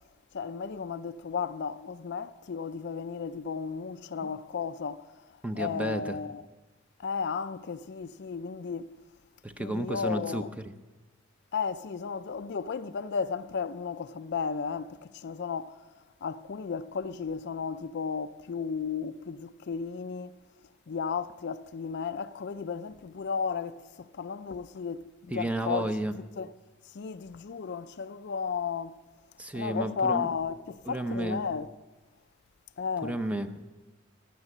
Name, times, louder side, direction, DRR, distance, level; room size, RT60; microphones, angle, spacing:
voice 1, 0.3-6.4 7.0-8.9 9.6-10.5 11.5-15.7 16.2-20.3 20.9-26.0 26.4-26.5 26.9-28.9 29.5-31.7 32.8-33.2, left 6 dB, 55° left, 0.4 m, -34 dB
voice 2, 5.4-6.2 9.4-10.7 25.3-26.1 29.4-30.3 30.9-31.4 33.0-33.7, right 1 dB, 5° right, 0.6 m, -32 dB
16.5 x 11.5 x 6.1 m
head